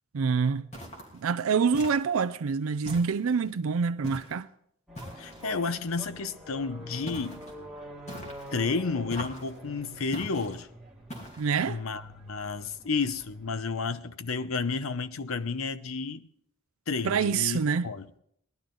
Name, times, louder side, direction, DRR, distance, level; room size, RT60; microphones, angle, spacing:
voice 1, 0.1-0.7 1.2-4.5 11.4-11.8 17.0-17.9, right 5 dB, 80° right, 0.5 m, -26 dB
sound 1, 0.7-1.2 1.7-2.3 2.8-3.5 4.0-4.4 4.9-5.5 7.1-7.5 8.1-8.6 9.1-9.6 10.1-10.6 11.1-11.6, equal, 35° left, 2.8 m, -42 dB
sound 2, 4.9-13.6, equal, ahead, 2.0 m, -46 dB
voice 2, 5.2-7.4 8.5-10.7 11.7-16.3 16.9-18.2, left 4 dB, 80° left, 0.7 m, -31 dB
19.0 x 12.0 x 3.8 m
head